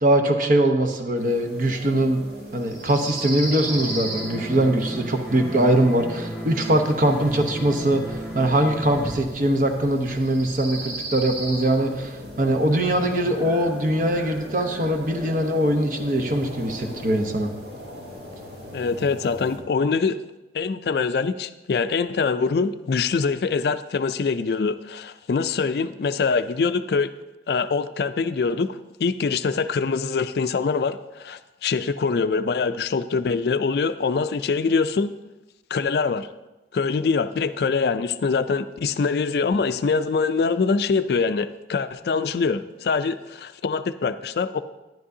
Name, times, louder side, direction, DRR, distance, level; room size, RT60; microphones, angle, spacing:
voice 1, 0.0-2.2 2.5-17.5, right 1 dB, 45° right, 4 dB, 0.9 m, -22 dB
sound 1, 1.1-19.6, equal, 70° right, 2.5 m, -37 dB
sound 2, 3.6-9.2, equal, 10° right, 0.9 m, -34 dB
voice 2, 18.7-20.2 20.5-27.1 27.5-35.1 35.7-36.3 36.7-44.6, left 4 dB, 60° left, 12 dB, 0.4 m, -24 dB
11.0 x 10.5 x 2.7 m, 1.0 s
head